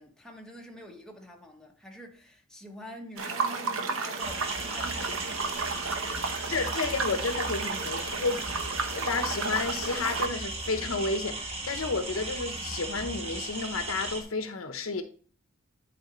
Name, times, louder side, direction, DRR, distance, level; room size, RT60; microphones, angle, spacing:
voice 1, 0.0-5.4, equal, 5° left, 1.1 m, -46 dB
sound 1, 3.2-10.3, right 4 dB, 70° right, 0.9 m, -33 dB
sound 2, 4.2-14.2, right 2 dB, 30° right, 1.2 m, -37 dB
voice 2, 6.5-8.5 8.9-15.0, left 3 dB, 70° left, 0.8 m, -31 dB
10.5 x 4.9 x 3.0 m
head